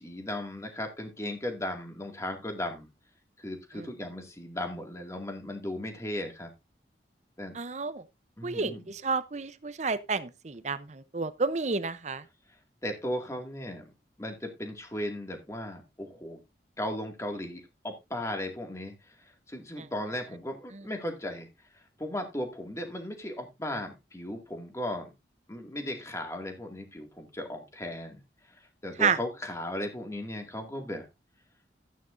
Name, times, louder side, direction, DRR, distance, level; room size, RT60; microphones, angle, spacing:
voice 1, 0.0-2.9 3.4-6.5 7.4-7.5 8.4-8.8 12.8-13.8 14.2-16.4 16.8-21.5 21.7-25.1 25.5-28.2 28.5-31.1, left 1 dB, 15° left, 2.1 m, -36 dB
voice 2, 7.5-8.0 8.4-12.2 29.0-29.2, right 4 dB, 40° right, 0.7 m, -30 dB
13.0 x 9.3 x 2.6 m
head